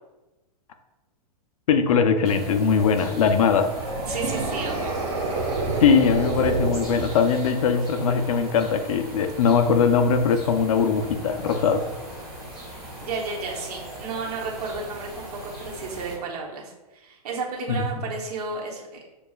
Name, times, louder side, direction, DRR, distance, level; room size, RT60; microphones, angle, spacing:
voice 1, 1.7-3.7 5.8-11.8 17.7-17.8, left 6 dB, 60° left, 7 dB, 0.5 m, -21 dB
sound 1, 2.2-16.1, right 1 dB, ahead, 1.2 m, -38 dB
sound 2, 3.6-7.5, right 3 dB, 50° right, 1.0 m, -28 dB
voice 2, 4.1-5.0 13.0-18.8, right 4 dB, 70° right, -1 dB, 1.1 m, -32 dB
6.8 x 2.3 x 2.4 m, 1.1 s
hypercardioid pair, 170°, 21 cm